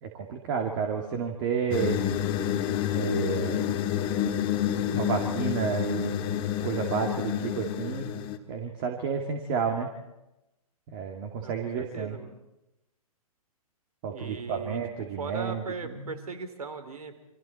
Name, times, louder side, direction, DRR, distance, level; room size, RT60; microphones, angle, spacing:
voice 1, 0.0-2.0 2.9-3.6 4.9-6.2 6.6-8.2 8.5-9.9 10.9-12.2 14.0-16.1, right 6 dB, 40° right, 3 dB, 2.5 m, -31 dB
sound 1, 1.7-8.4, left 10 dB, 25° left, 1.7 m, -29 dB
voice 2, 11.4-12.4 14.1-17.1, right 4 dB, 75° right, 9 dB, 3.6 m, -39 dB
29.0 x 25.0 x 4.4 m, 0.92 s
figure-of-eight pair, 130°, 19 cm